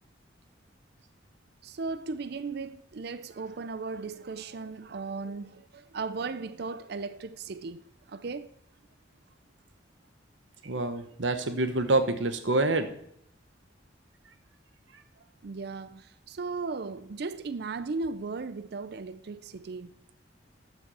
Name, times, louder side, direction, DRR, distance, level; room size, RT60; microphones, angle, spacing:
voice 1, 1.6-7.8 8.1-8.5 15.4-19.9, right 4 dB, 55° right, 0.5 m, -36 dB
voice 2, 10.6-12.9, right 2 dB, 80° right, 1.1 m, -26 dB
13.5 x 6.1 x 5.5 m
head